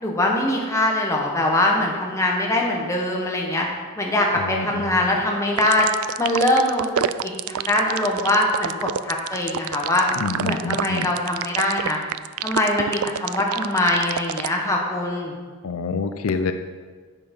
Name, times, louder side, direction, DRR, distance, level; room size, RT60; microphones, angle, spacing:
voice 1, 0.0-3.7 4.0-5.9 6.2-10.1 10.4-12.0 12.4-15.3, left 1 dB, 15° left, -1 dB, 1.3 m, -22 dB
voice 2, 4.4-5.2 10.2-11.1 15.6-16.5, left 4 dB, 70° left, 9 dB, 0.5 m, -27 dB
sound 1, 5.6-14.5, right 10 dB, 75° right, 0.3 m, -27 dB
9.3 x 6.9 x 5.4 m, 1.5 s
head